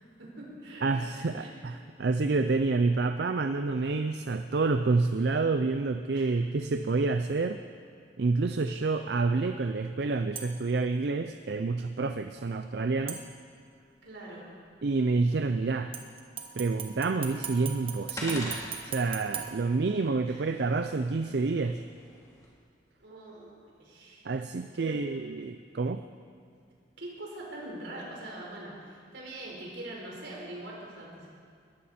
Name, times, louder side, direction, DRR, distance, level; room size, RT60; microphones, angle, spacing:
voice 1, 0.2-1.5 6.1-6.3 14.0-14.5 20.2-20.5 23.0-24.3 24.8-25.0 27.0-31.3, right 1 dB, 85° right, -3 dB, 4.4 m, -43 dB
voice 2, 0.8-7.6 8.2-13.2 14.8-15.9 16.5-18.6 18.8-21.8 24.2-26.0, right 3 dB, 65° right, 8 dB, 0.5 m, -28 dB
sound 1, 10.4-10.8 13.1-13.8 15.9-20.3 20.8-20.9, right 8 dB, 30° right, 1.2 m, -41 dB
sound 2, 17.0-22.5, left 1 dB, 20° left, 2.4 m, -44 dB
21.0 x 14.0 x 4.3 m, 2.2 s
head